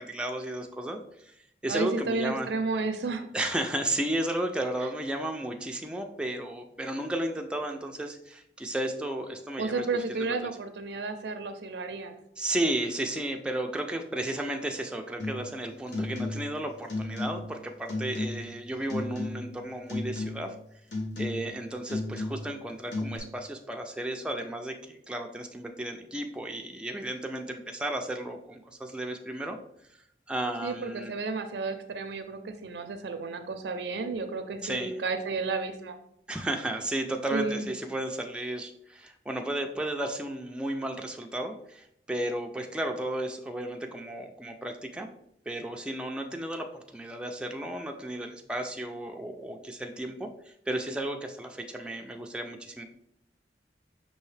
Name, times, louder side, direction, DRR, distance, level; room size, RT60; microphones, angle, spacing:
voice 1, 0.0-2.5 3.3-10.4 12.4-20.5 21.2-29.6 30.3-31.1 34.6-34.9 36.3-45.1 45.5-52.8, right 1 dB, 5° right, 3 dB, 0.3 m, -33 dB
voice 2, 1.7-3.3 9.6-12.1 30.6-36.0 37.3-37.7, right 3 dB, 75° right, 8 dB, 0.4 m, -32 dB
sound 1, 15.2-15.5 15.9-16.6 16.9-17.6 17.9-18.5 18.9-19.6 19.9-20.5 20.9-21.6 21.9-22.6 22.9-23.2, left 2 dB, 85° left, 1.1 m, -34 dB
5.5 x 2.7 x 3.2 m, 0.74 s
head